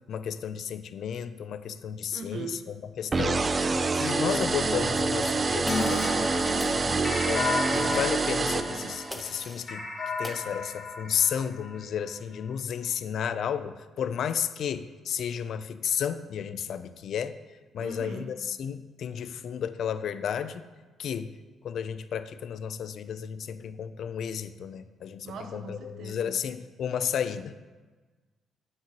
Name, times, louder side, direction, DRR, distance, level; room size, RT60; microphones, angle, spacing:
voice 1, 0.1-3.5 4.0-6.8 7.3-7.4 7.7-9.9 10.2-17.3 17.7-20.7 21.0-21.3 21.6-27.6, left 8 dB, 65° left, 13 dB, 0.4 m, -32 dB
voice 2, 2.1-2.7 6.8-7.3 17.8-18.3 25.2-26.4, right 4 dB, 70° right, 6 dB, 0.9 m, -39 dB
sound 1, 3.1-9.3, right 3 dB, 30° right, 0.4 m, -27 dB
sound 2, 5.7-11.8, left 3 dB, 40° left, 1.8 m, -33 dB
sound 3, 5.7-6.3 6.6-6.8 9.1-9.7 10.2-10.4, left 1 dB, 10° left, 0.7 m, -41 dB
9.4 x 7.5 x 2.9 m, 1.3 s
cardioid pair, 90°, 0 cm